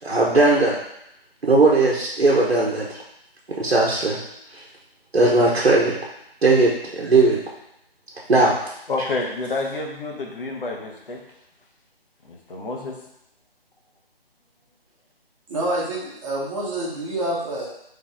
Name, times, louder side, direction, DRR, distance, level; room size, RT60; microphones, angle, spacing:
voice 1, 0.0-0.8 1.4-3.0 3.5-4.2 4.5-4.6 5.1-6.0 6.4-7.4 8.3-8.5, right 2 dB, 85° right, -4 dB, 1.0 m, -18 dB
voice 2, 8.9-11.3 12.2-13.0, left 3 dB, 60° left, 0 dB, 1.1 m, -29 dB
voice 3, 15.5-17.7, right 1 dB, 30° right, -5 dB, 1.4 m, -27 dB
4.1 x 3.4 x 3.6 m, 0.78 s
figure-of-eight pair, 150°, 30 cm